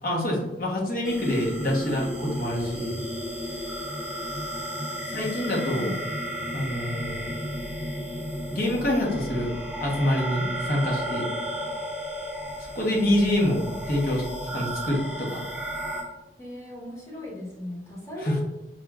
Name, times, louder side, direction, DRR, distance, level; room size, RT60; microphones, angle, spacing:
voice 1, 0.0-3.0 5.1-5.9 6.5-7.3 8.5-9.5 9.8-11.2 12.7-14.2 14.5-15.4 18.2-18.4, left 1 dB, 50° left, -3 dB, 1.0 m, -26 dB
sound 1, 1.0-16.0, equal, 5° right, 0.6 m, -33 dB
voice 2, 5.4-6.0 16.4-18.4, left 1 dB, 15° left, -5 dB, 1.0 m, -38 dB
4.9 x 2.9 x 2.4 m, 0.97 s
head